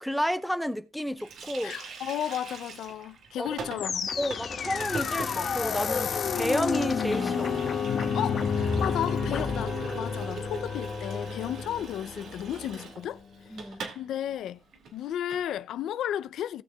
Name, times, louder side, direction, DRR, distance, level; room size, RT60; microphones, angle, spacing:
voice 1, 0.0-1.7 3.4-3.5 4.2-7.5 13.5-13.8, equal, ahead, 0.7 m, -31 dB
Water tap faucet, 1.2-14.0 14.3-14.4 14.7-15.5, right 5 dB, 65° right, 2.1 m, -43 dB
voice 2, 1.6-4.1 8.1-13.2 13.5-14.6 14.9-16.6, left 11 dB, 75° left, 0.4 m, -34 dB
sound 1, 3.8-12.9, left 6 dB, 55° left, 1.7 m, -30 dB
17.5 x 6.5 x 2.3 m
cardioid pair, 90°, 0 cm